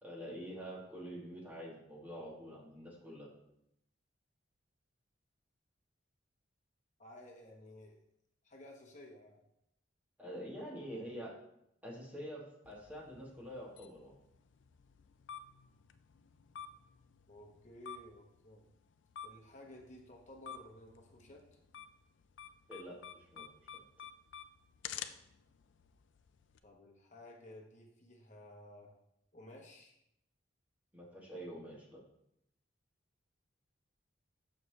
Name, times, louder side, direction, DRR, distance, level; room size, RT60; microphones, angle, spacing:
voice 1, 0.0-3.3 10.2-11.3 11.8-14.1 22.7-23.9 30.9-32.0, equal, 10° right, -2 dB, 1.1 m, -46 dB
voice 2, 7.0-8.0 8.4-9.4 17.3-18.6 19.2-21.6 26.6-28.9 29.3-30.0, left 1 dB, 40° left, 0 dB, 1.0 m, -54 dB
sound 1, 12.6-26.6, left 8 dB, 70° left, 0.4 m, -52 dB
6.7 x 6.2 x 3.1 m, 0.79 s
head